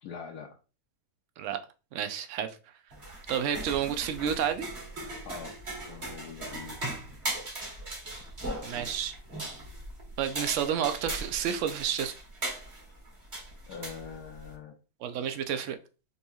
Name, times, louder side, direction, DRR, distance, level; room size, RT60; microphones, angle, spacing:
voice 1, 0.0-0.6 5.2-5.6 5.9-7.0 13.7-14.8, left 6 dB, 75° left, 1 dB, 1.1 m, -43 dB
voice 2, 1.9-2.5 3.3-4.7 8.6-9.2 10.2-12.1 15.0-15.8, right 9 dB, 65° right, 8 dB, 0.8 m, -30 dB
sound 1, 2.9-14.5, right 2 dB, 45° right, 1.8 m, -39 dB
5.4 x 2.9 x 2.3 m, 0.33 s
omnidirectional pair, 1.7 m